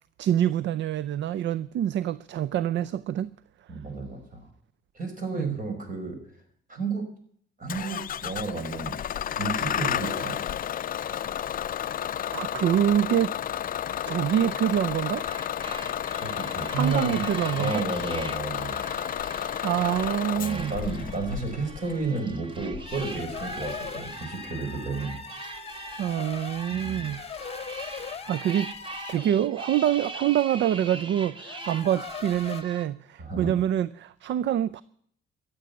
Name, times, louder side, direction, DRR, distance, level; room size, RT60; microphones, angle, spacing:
voice 1, 0.2-3.3 5.3-5.6 12.3-13.3 14.1-15.3 16.7-17.8 19.6-20.8 26.0-27.2 27.9-28.7 29.1-34.8, right 10 dB, 65° right, 0.5 m, -26 dB
voice 2, 3.7-4.5 4.9-6.2 6.7-7.0 7.6-9.0 9.3-10.4 16.2-17.3 17.5-18.8 20.4-25.2 26.7-27.1 33.2-33.5, right 3 dB, 45° right, 5.4 m, -32 dB
Bus / Engine starting, 7.7-23.9, left 10 dB, 45° left, 0.5 m, -32 dB
sound 1, 13.8-32.9, right 2 dB, 25° right, 1.5 m, -42 dB
sound 2, 22.9-29.4 31.4-32.6, left 6 dB, 30° left, 1.0 m, -40 dB
13.5 x 7.9 x 9.6 m
cardioid pair, 90°, 20 cm